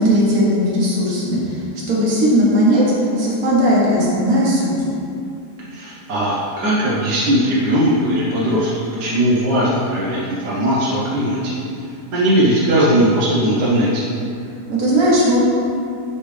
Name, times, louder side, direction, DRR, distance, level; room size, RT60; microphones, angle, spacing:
voice 1, 0.0-2.8 3.2-4.7 14.7-15.4, equal, 60° right, -6 dB, 1.7 m, -17 dB
voice 2, 5.7-11.6 12.1-14.0, right 1 dB, 80° right, -7 dB, 1.5 m, -18 dB
10.0 x 3.4 x 3.3 m, 2.5 s
omnidirectional pair, 1.8 m